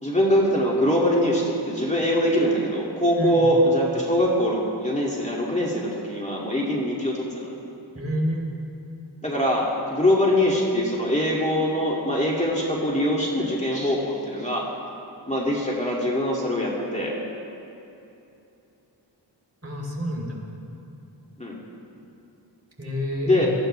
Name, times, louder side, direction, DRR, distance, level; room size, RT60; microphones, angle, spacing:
voice 1, 0.0-7.4 9.2-14.7 15.3-17.1 21.4-21.6 23.3-23.5, equal, 15° left, -4 dB, 2.4 m, -23 dB
voice 2, 7.9-8.5 19.6-20.4 22.8-23.5, equal, 35° right, -2 dB, 3.7 m, -28 dB
23.0 x 14.5 x 3.4 m, 2.9 s
wide cardioid pair, 55°, 45 cm